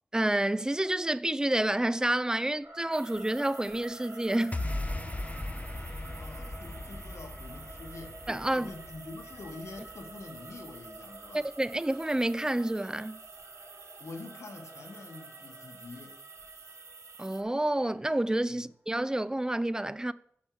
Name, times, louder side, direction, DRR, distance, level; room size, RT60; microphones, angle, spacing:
voice 1, 0.1-4.6 8.3-8.7 11.3-13.2 17.2-20.1, right 1 dB, 15° right, 0.4 m, -29 dB
sound 1, 2.6-18.6, right 1 dB, 55° right, 3.1 m, -50 dB
sound 2, 2.9-17.4, right 5 dB, 85° right, 0.6 m, -51 dB
sound 3, 4.5-11.0, left 2 dB, 30° left, 0.6 m, -38 dB
voice 2, 6.2-8.2 8.5-11.5 14.0-16.2 18.5-18.7, left 3 dB, 85° left, 1.1 m, -46 dB
8.7 x 6.0 x 4.6 m
wide cardioid pair, 60°, 5 cm